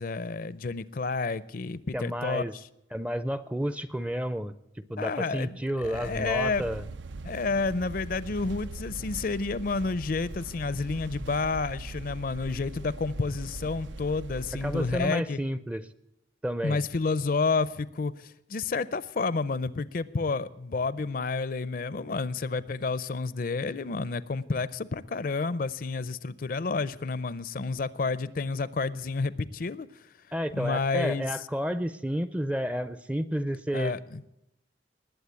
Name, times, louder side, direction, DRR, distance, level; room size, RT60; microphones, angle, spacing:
voice 1, 0.0-2.4 5.0-5.6 5.8-6.7 7.2-15.4 16.6-29.9 30.5-31.3 33.7-34.2, left 4 dB, 50° left, 0.5 m, -30 dB
voice 2, 1.9-2.5 2.9-6.8 14.6-15.9 16.4-16.8 30.3-33.9, equal, 5° right, 0.4 m, -31 dB
sound 1, 5.8-15.1, right 2 dB, 80° right, 0.5 m, -41 dB
20.0 x 8.0 x 8.1 m
head